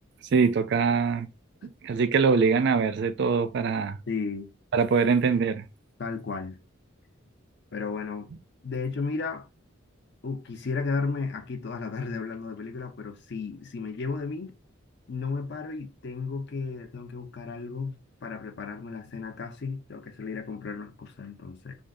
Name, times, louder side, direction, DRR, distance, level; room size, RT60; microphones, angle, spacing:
voice 1, 0.3-1.3 1.8-4.0 4.7-5.6, right 5 dB, 55° right, 0.3 m, -23 dB
voice 2, 4.1-4.5 6.0-6.6 7.7-8.3 8.6-9.5 10.2-14.5 15.1-21.8, left 4 dB, 55° left, 0.5 m, -34 dB
2.5 x 2.3 x 3.4 m
head